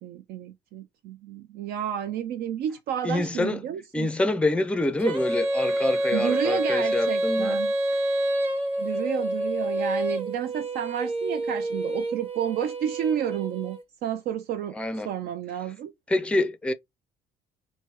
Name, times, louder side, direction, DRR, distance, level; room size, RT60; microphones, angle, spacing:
voice 1, 0.0-4.1 6.1-7.7 8.8-14.7 15.0-15.9, right 9 dB, 65° right, 0.4 m, -31 dB
voice 2, 3.0-3.6 3.9-7.6 14.7-15.1 16.1-16.7, left 2 dB, 5° left, 0.4 m, -26 dB
Female singing, 5.0-13.8, right 1 dB, 35° right, 1.2 m, -27 dB
3.1 x 2.7 x 3.1 m
cardioid pair, 110°, 17 cm